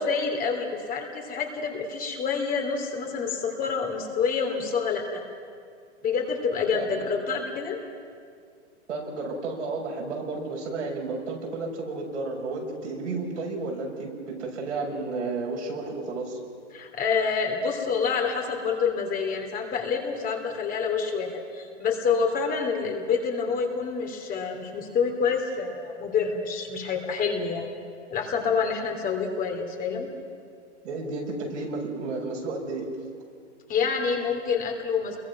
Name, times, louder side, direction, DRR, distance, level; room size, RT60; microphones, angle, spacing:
voice 1, 0.0-5.2 6.0-7.8 16.7-27.7 28.1-30.1 33.7-35.2, left 5 dB, 25° left, 3 dB, 3.1 m, -27 dB
voice 2, 8.9-14.1 14.4-16.4 30.8-32.8, right 3 dB, 80° right, -1 dB, 6.7 m, -32 dB
29.5 x 22.0 x 6.0 m, 2.2 s
hypercardioid pair, 130°, 35 cm